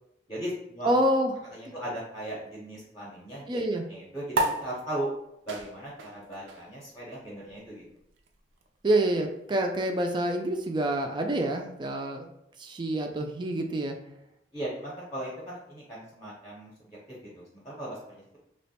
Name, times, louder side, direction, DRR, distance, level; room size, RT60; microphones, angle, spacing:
voice 1, 0.3-0.9 1.5-3.6 3.9-5.1 5.5-7.8 14.5-18.4, right 1 dB, 20° left, -6 dB, 0.7 m, -38 dB
voice 2, 0.8-1.3 3.5-3.8 8.8-12.3 12.6-14.0, right 1 dB, 25° right, 4 dB, 0.3 m, -27 dB
sound 1, 4.3-11.1, right 2 dB, 90° right, 0.5 m, -36 dB
2.9 x 2.2 x 4.1 m, 0.80 s
head